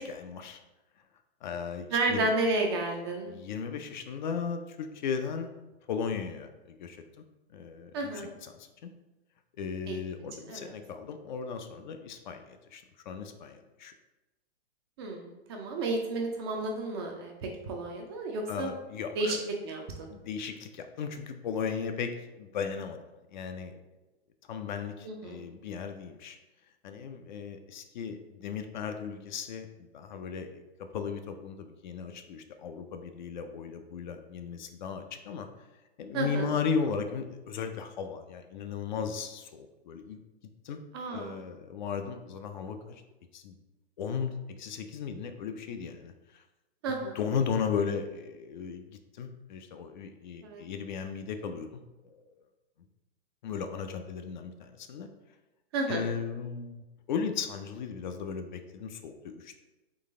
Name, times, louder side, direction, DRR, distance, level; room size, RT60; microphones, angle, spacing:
voice 1, 0.1-0.6 1.4-2.3 3.3-5.6 5.9-7.0 7.5-8.9 9.6-13.9 18.5-19.5 20.1-22.1 22.4-23.0 23.3-23.7 24.5-26.4 26.8-35.5 36.0-40.2 40.6-40.8 41.1-43.0 43.3-43.6 44.0-44.3 44.6-46.4 46.9-52.2 53.4-55.1 55.9-59.6, left 6 dB, 45° left, 7 dB, 0.4 m, -36 dB
voice 2, 1.9-3.3 7.9-8.3 9.9-10.0 10.5-10.7 15.0-18.7 19.1-19.4 19.6-20.1 25.0-25.4 36.1-36.5 40.9-41.4 46.8-47.2 50.4-50.6 55.7-56.1, right 2 dB, 25° right, 2 dB, 0.4 m, -32 dB
3.9 x 3.2 x 3.6 m, 1.0 s
hypercardioid pair, 140°, 33 cm